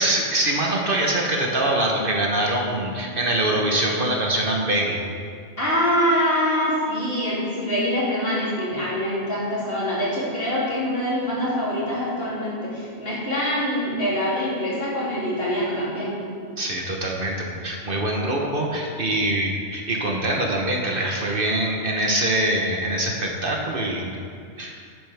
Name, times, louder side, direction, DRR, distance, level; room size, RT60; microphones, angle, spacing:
voice 1, 0.0-5.0 16.6-24.1 24.6-24.7, right 1 dB, 50° right, 0 dB, 1.2 m, -24 dB
voice 2, 5.6-16.2, equal, 55° left, -9 dB, 3.3 m, -24 dB
11.5 x 9.0 x 3.5 m, 2.2 s
omnidirectional pair, 1.2 m